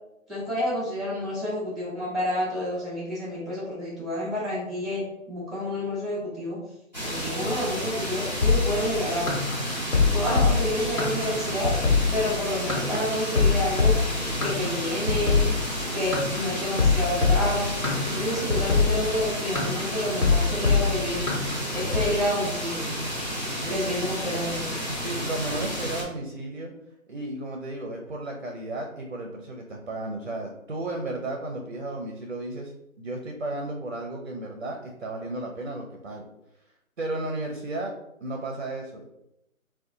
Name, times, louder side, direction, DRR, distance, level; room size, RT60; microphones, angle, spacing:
voice 1, 0.3-6.6 7.0-9.4 10.1-11.7 12.1-14.0 14.4-15.5 15.9-17.8 18.0-21.2 21.7-22.9 23.7-24.6, left 1 dB, ahead, -6 dB, 0.5 m, -29 dB
sound 1, 6.9-26.0, equal, 30° left, 0.8 m, -31 dB
sound 2, 8.4-22.1, left 4 dB, 75° left, 1.3 m, -23 dB
voice 2, 10.1-10.6 23.6-24.0 24.9-26.7 27.1-36.2 37.0-37.9 38.2-39.1, right 2 dB, 55° right, 2 dB, 0.5 m, -34 dB
3.6 x 2.2 x 2.6 m, 0.83 s
hypercardioid pair, 175°, 42 cm